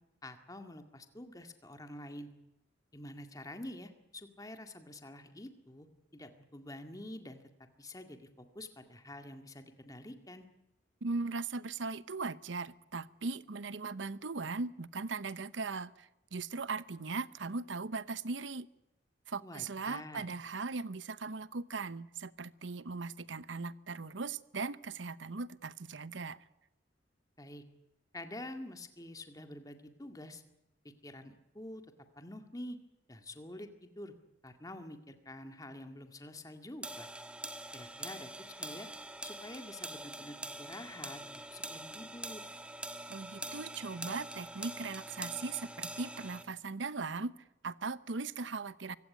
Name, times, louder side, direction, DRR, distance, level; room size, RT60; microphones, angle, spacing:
voice 1, 0.2-2.3 2.9-5.9 6.1-7.4 7.8-10.5 19.4-20.3 27.4-27.6 28.1-30.4 30.8-31.8 32.2-32.8 33.1-34.1 34.4-37.1 37.7-38.9 39.2-41.2 41.5-42.4, left 1 dB, 20° left, 6 dB, 2.0 m, -47 dB
voice 2, 11.0-18.7 19.3-26.4 43.1-47.3 47.6-49.0, right 4 dB, 90° right, 16 dB, 0.8 m, -39 dB
sound 1, 36.8-46.4, right 1 dB, 5° right, 1.5 m, -44 dB
24.0 x 16.5 x 9.3 m, 0.92 s
head